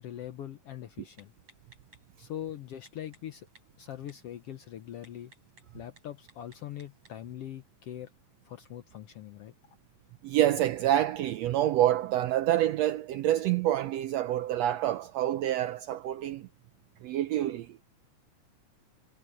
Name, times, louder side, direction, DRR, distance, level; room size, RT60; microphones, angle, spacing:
voice 1, 0.0-1.3 2.2-3.5 3.8-5.3 5.7-8.1 8.4-9.5, left 11 dB, 70° left, 1.5 m, -42 dB
Typing, 1.1-7.3, right 2 dB, 45° right, 9.1 m, -63 dB
voice 2, 10.2-16.5 17.0-17.8, right 13 dB, 75° right, 1.5 m, -27 dB
omnidirectional pair, 3.6 m